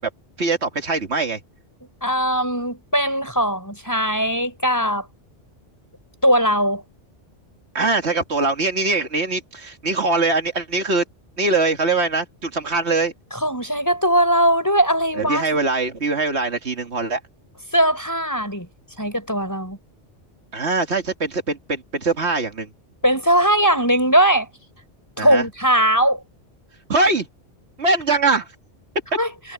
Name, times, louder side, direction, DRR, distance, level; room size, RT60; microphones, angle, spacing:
voice 1, 0.4-1.4 7.7-11.0 11.4-13.1 15.2-17.2 20.5-22.7 25.2-25.4 26.9-27.3 27.8-28.5, right 3 dB, 65° right, 2.3 m, -22 dB
voice 2, 2.0-5.0 6.2-6.8 13.4-15.5 17.7-18.7 19.0-19.8 23.0-24.5 25.2-26.2 29.2-29.3, right 1 dB, 15° left, 4.8 m, -19 dB
omnidirectional pair, 1.2 m